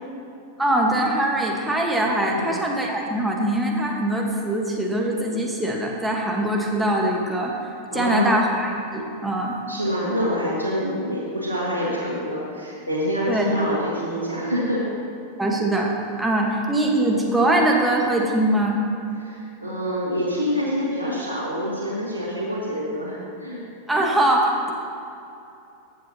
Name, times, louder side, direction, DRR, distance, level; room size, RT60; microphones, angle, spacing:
voice 1, 0.6-7.6 7.9-9.6 13.3-13.4 15.4-18.8 23.9-24.7, right 1 dB, 5° right, -1 dB, 1.3 m, -22 dB
voice 2, 7.9-8.4 9.7-14.9 19.2-23.6, equal, 85° left, -7 dB, 1.8 m, -26 dB
14.5 x 7.7 x 2.9 m, 2.7 s
figure-of-eight pair, 90°, 0 cm